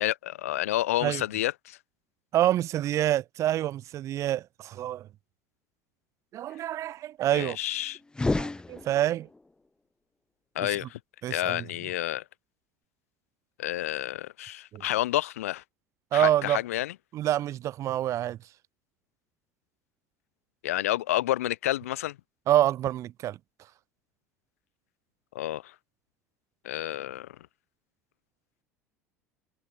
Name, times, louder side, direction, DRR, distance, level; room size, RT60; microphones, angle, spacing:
voice 1, 0.0-1.8 7.3-8.0 10.6-11.0 11.3-12.2 13.6-15.6 16.1-16.9 20.6-22.2 25.3-25.7 26.6-27.3, left 14 dB, 70° left, 0.5 m, -29 dB
voice 2, 2.3-5.1 6.3-7.6 8.4-9.3 10.6-10.7 11.2-11.6 14.7-14.8 16.1-16.6 17.1-18.4 22.5-23.4, right 13 dB, 40° right, 0.3 m, -27 dB
sound 1, 8.1-9.4, left 2 dB, 10° left, 0.6 m, -30 dB
figure-of-eight pair, 65°, 8 cm